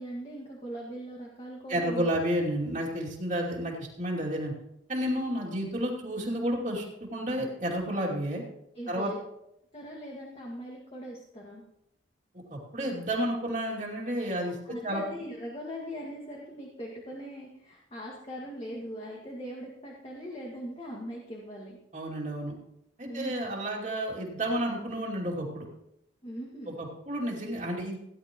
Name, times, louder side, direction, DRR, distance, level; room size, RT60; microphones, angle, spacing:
voice 1, 0.0-2.1 5.3-5.6 8.7-9.2 9.7-11.6 14.4-21.8 23.0-23.3 26.2-26.8, equal, 30° left, -3 dB, 1.9 m, -40 dB
voice 2, 1.7-4.5 4.9-6.8 7.1-8.4 8.9-9.1 12.5-15.0 21.9-22.5 23.0-25.7 26.8-28.0, equal, 40° right, -3 dB, 2.6 m, -31 dB
17.5 x 11.0 x 3.0 m, 0.82 s
head